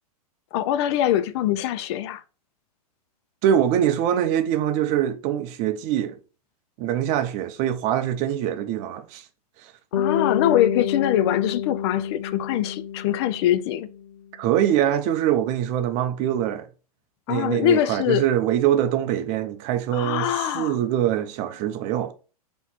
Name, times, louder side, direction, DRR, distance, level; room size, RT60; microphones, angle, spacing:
voice 1, 0.5-2.2 9.9-13.9 17.3-18.3 19.9-20.8, left 12 dB, 45° left, 0.4 m, -23 dB
voice 2, 3.4-6.2 6.8-9.2 9.6-9.7 14.4-16.7 17.3-22.1, right 10 dB, 35° right, 0.6 m, -23 dB
Bass guitar, 9.9-14.2, left 9 dB, 85° left, 0.7 m, -28 dB
4.0 x 3.0 x 4.3 m
hypercardioid pair, 120°, 20 cm